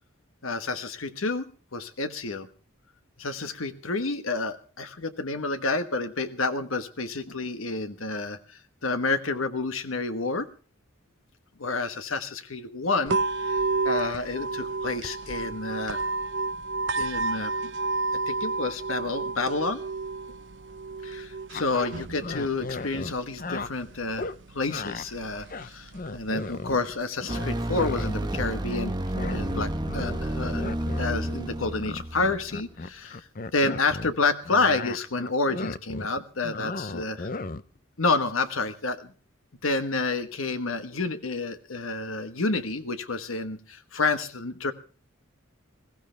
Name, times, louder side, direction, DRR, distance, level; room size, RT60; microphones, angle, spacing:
voice 1, 0.4-2.5 3.2-10.5 11.6-16.0 17.0-17.5 18.3-19.8 21.0-24.3 24.5-28.9 29.3-30.7 31.0-37.3 38.0-39.1 39.6-44.7, left 3 dB, 90° left, 10 dB, 1.3 m, -29 dB
sound 1, 13.1-27.1, right 3 dB, 60° right, 0.8 m, -32 dB
sound 2, 21.5-23.7 24.2-24.4 24.7-25.1 25.4-26.9 27.2-28.9 29.1-34.1 34.4-37.8, left 3 dB, 45° left, 0.7 m, -35 dB
sound 3, 27.3-32.6, right 1 dB, 20° right, 1.2 m, -30 dB
21.5 x 15.5 x 3.3 m, 0.38 s
head